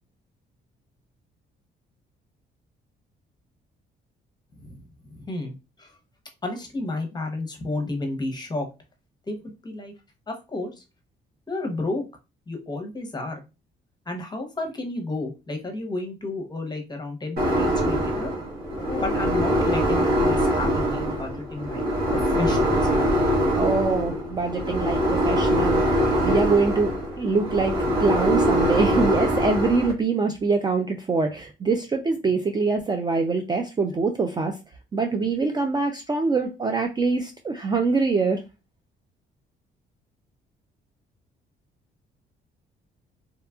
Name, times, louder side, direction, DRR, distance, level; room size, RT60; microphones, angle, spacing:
voice 1, 4.6-6.0 6.4-8.7 9.3-9.4 9.6-9.9 10.3-10.8 11.5-12.0 12.5-13.4 14.1-18.3 18.6-21.8 22.1-22.9, left 2 dB, 20° left, 4 dB, 0.8 m, -32 dB
sound 1, 17.4-29.9, equal, 50° right, 1.1 m, -23 dB
voice 2, 23.5-25.8 26.2-34.6 34.9-38.4, right 4 dB, 20° right, 4 dB, 0.3 m, -24 dB
2.7 x 2.3 x 2.3 m, 0.28 s
cardioid pair, 90°, 20 cm